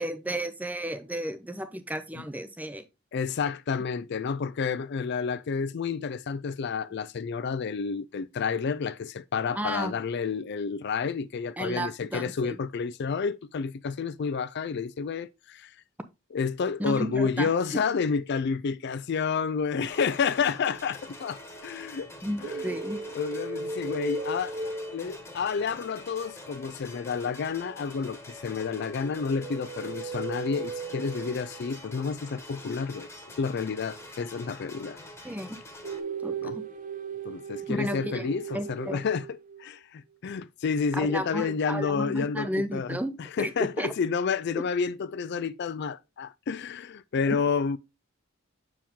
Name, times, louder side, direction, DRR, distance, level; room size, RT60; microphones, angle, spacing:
voice 1, 0.0-2.8 9.5-9.9 11.6-12.6 16.8-17.8 22.2-23.0 35.2-35.6 36.2-36.6 37.7-39.1 40.9-43.1 43.4-43.9 44.6-44.7 47.3-47.4, equal, 10° right, 0.6 m, -33 dB
voice 2, 3.1-15.7 16.3-22.1 22.4-22.6 23.1-33.1 33.4-35.0 36.4-36.6 37.2-43.0 43.4-47.8, left 5 dB, 60° left, 0.4 m, -30 dB
sound 1, 19.9-36.0, left 1 dB, 15° left, 1.4 m, -46 dB
sound 2, 22.4-25.6 29.1-31.7 35.8-39.6, right 3 dB, 40° right, 0.7 m, -36 dB
7.2 x 4.8 x 3.6 m
head